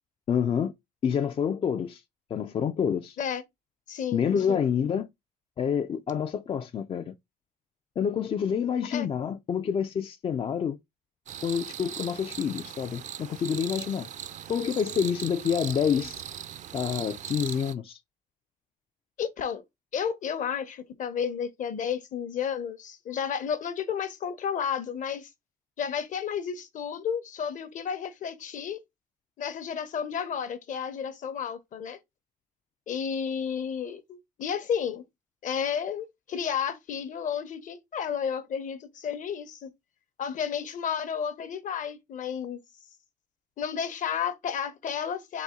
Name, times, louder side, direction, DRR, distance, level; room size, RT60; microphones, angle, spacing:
voice 1, 0.3-0.7 1.0-2.0 2.3-3.2 4.1-5.1 5.6-7.1 8.0-10.8 11.4-14.1 14.5-16.2 16.7-18.0, left 7 dB, 35° left, 0.4 m, -28 dB
voice 2, 3.9-4.7 8.9-9.1 19.2-19.6 19.9-25.3 25.8-28.8 29.4-32.0 32.9-35.0 35.4-39.7 40.2-42.6 43.6-45.4, left 7 dB, 50° left, 0.8 m, -32 dB
sound 1, 11.3-17.7, right 9 dB, 45° right, 0.4 m, -39 dB
4.1 x 2.7 x 3.5 m
cardioid pair, 110°, 17 cm